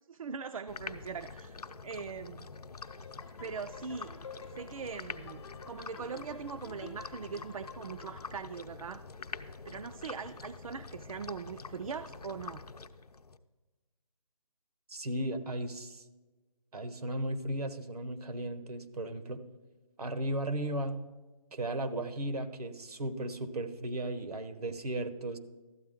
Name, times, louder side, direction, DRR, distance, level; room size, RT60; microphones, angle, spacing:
voice 1, 0.1-2.5 3.4-4.1 4.5-9.0 9.6-12.6, right 5 dB, 65° right, 11 dB, 0.4 m, -41 dB
sound 1, 0.7-13.4, left 4 dB, 90° left, 0.7 m, -46 dB
sound 2, 2.9-8.4, left 4 dB, 45° left, 0.7 m, -51 dB
voice 2, 14.9-16.0 16.7-19.4 20.0-21.0 21.5-25.4, right 1 dB, 85° right, 9 dB, 1.1 m, -35 dB
13.0 x 8.5 x 3.7 m, 1.2 s
figure-of-eight pair, 165°, 19 cm